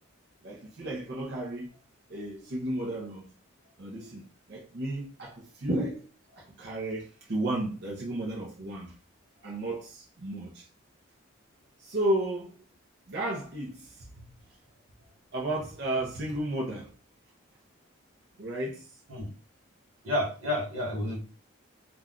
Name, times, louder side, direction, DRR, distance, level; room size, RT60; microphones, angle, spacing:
voice 1, 0.4-1.7 2.1-3.3 3.8-8.9 9.4-10.6 11.8-12.5 13.1-14.3 15.3-16.9 18.4-18.9, right 1 dB, 55° right, 0.6 m, -33 dB
voice 2, 20.0-21.2, left 1 dB, 90° right, 1.2 m, -30 dB
2.4 x 2.2 x 3.6 m
head